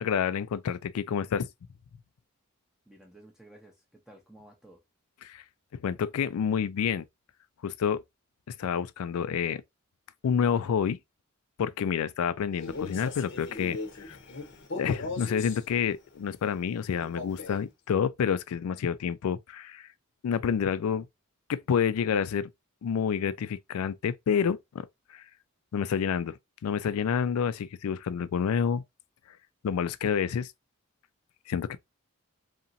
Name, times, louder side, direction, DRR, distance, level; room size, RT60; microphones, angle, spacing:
voice 1, 0.0-1.5 5.2-5.4 5.8-7.1 7.6-8.0 8.5-9.6 10.2-11.0 11.6-14.2 14.8-19.9 20.2-21.1 21.5-22.5 22.8-25.2 25.7-26.3 26.6-28.8 29.6-30.5 31.5-31.8, left 7 dB, 85° left, 0.3 m, -28 dB
voice 2, 2.9-4.8, right 1 dB, 5° right, 0.7 m, -54 dB
Male speech man speaking, 12.5-15.6 17.0-17.7, left 3 dB, 50° left, 0.7 m, -38 dB
2.9 x 2.6 x 2.6 m
head